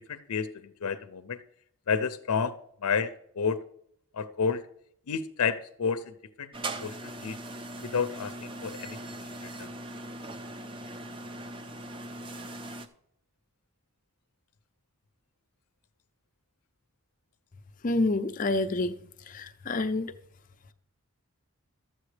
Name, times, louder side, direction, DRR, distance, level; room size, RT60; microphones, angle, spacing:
voice 1, 0.1-1.4 1.9-2.5 2.8-3.6 4.1-4.6 5.1-6.1 6.4-6.5 6.8-7.4 7.8-9.0 9.4-9.5, left 6 dB, 90° left, 0.5 m, -30 dB
sound 1, 6.5-12.9, right 1 dB, 25° right, 0.5 m, -40 dB
voice 2, 17.8-18.9 19.3-20.1, left 2 dB, 35° left, 0.5 m, -28 dB
13.0 x 7.7 x 3.3 m
head